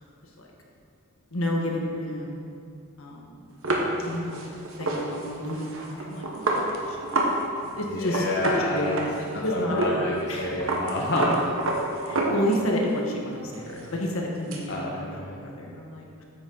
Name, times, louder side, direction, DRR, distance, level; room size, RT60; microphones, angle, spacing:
voice 1, 1.3-2.4 3.0-3.3 4.0-7.0 7.7-10.5 12.0-16.2, equal, 75° left, -1 dB, 1.4 m, -31 dB
sound 1, 3.6-7.4 7.6-7.7 8.0-9.4 9.8-10.0 10.2-12.8 13.2-14.6, right 2 dB, 65° right, 1.2 m, -28 dB
voice 2, 7.9-8.9 9.5-11.5 14.7-15.4, left 1 dB, 55° left, -3 dB, 0.8 m, -28 dB
9.1 x 8.2 x 4.0 m, 2.4 s
head